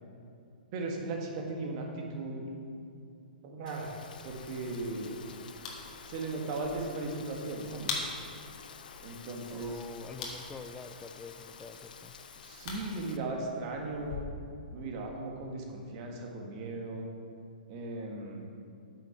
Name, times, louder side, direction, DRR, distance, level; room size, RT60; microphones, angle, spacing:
voice 1, 0.7-2.4 3.4-3.9 4.2-5.2 6.0-7.9 9.0-9.7 12.4-14.2 14.7-17.1 17.7-18.5, right 2 dB, 40° right, 1 dB, 1.5 m, -37 dB
Rain, 3.7-13.2, left 6 dB, 65° left, 0.6 m, -50 dB
sound 1, 4.2-14.2, left 4 dB, 45° left, 1.7 m, -45 dB
voice 2, 9.5-12.1, left 4 dB, 10° left, 10 dB, 0.4 m, -46 dB
8.8 x 6.4 x 4.6 m, 2.5 s
figure-of-eight pair, 120°, 5 cm